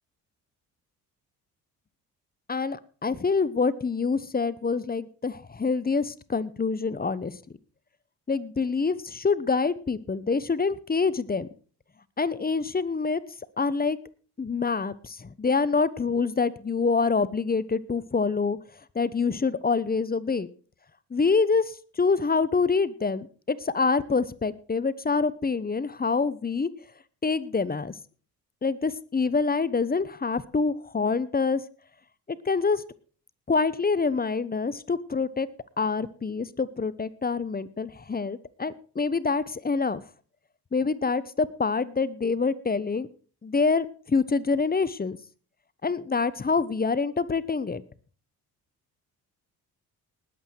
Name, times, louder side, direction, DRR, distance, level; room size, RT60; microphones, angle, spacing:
voice 1, 2.5-7.3 8.3-11.5 12.2-13.2 13.6-14.0 14.4-18.6 18.9-20.5 21.1-26.7 27.2-27.9 28.6-31.6 32.4-32.8 33.5-35.5 35.8-40.0 40.7-43.1 43.4-45.2 45.8-47.8, left 4 dB, 20° left, 18 dB, 1.0 m, -26 dB
19.5 x 8.0 x 4.6 m, 0.41 s
hypercardioid pair, 50°, 46 cm